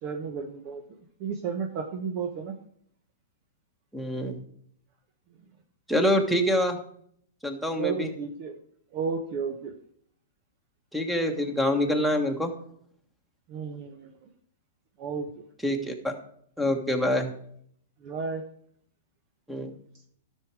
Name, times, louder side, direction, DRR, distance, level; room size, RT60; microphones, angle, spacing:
voice 1, 0.0-0.8 1.2-2.5 7.8-8.5 8.9-9.7 13.5-14.1 15.0-15.3 17.0-17.2 18.0-18.4, right 5 dB, 45° right, 5 dB, 1.1 m, -32 dB
voice 2, 3.9-4.4 5.9-6.8 7.4-8.1 10.9-12.5 15.6-16.1 16.6-17.3 19.5-19.7, equal, ahead, 6 dB, 1.6 m, -26 dB
12.5 x 6.5 x 4.8 m, 0.64 s
hypercardioid pair, 120°, 0 cm